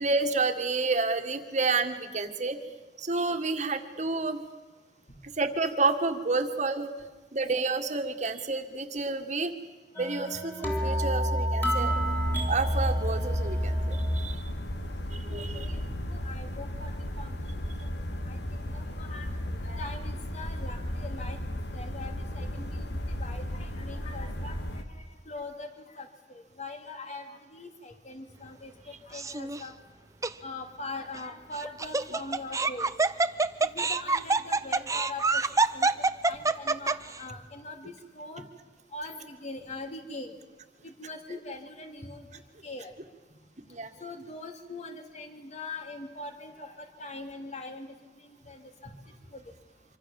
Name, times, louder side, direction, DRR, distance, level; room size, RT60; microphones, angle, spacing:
voice 1, 0.0-2.6 3.0-4.4 5.4-6.9 7.3-9.5 10.0-11.9 12.5-14.5 15.1-15.7 43.7-43.9, right 3 dB, 45° right, 6 dB, 1.9 m, -29 dB
sound 1, 9.9-14.3, equal, 10° left, 3.7 m, -28 dB
sound 2, 11.9-24.8, left 1 dB, 70° left, 2.0 m, -35 dB
voice 2, 15.3-16.9 17.2-17.3 17.8-17.9 18.2-18.4 18.7-19.3 19.6-21.4 21.7-24.6 25.3-25.7 25.9-26.1 26.3-28.7 29.1-29.7 30.4-32.9 33.6-35.4 35.7-35.9 36.2-38.4 38.9-40.3 40.8-42.2 42.6-42.9 44.0-47.9 48.5-48.9, left 2 dB, 40° left, 5 dB, 3.0 m, -41 dB
Laughter, 29.1-29.6 30.2-30.3 31.6-37.2, right 3 dB, 20° right, 0.7 m, -26 dB
26.0 x 25.0 x 7.2 m, 1.2 s
head